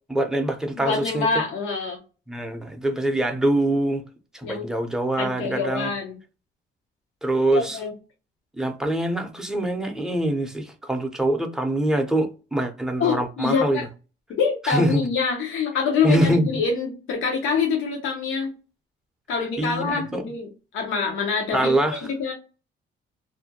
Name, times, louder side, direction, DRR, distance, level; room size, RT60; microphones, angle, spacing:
voice 1, 0.1-1.3 2.3-4.0 4.3-5.9 7.2-7.8 8.6-13.8 14.6-15.0 16.0-16.5 19.6-20.2 21.5-22.0, right 1 dB, 5° right, 0.5 m, -24 dB
voice 2, 0.8-2.0 4.4-4.7 5.2-6.2 7.5-7.9 13.0-13.8 14.3-18.5 19.3-21.7 22.1-22.3, left 5 dB, 85° left, 0.7 m, -25 dB
2.5 x 2.1 x 2.7 m
cardioid pair, 90°, 20 cm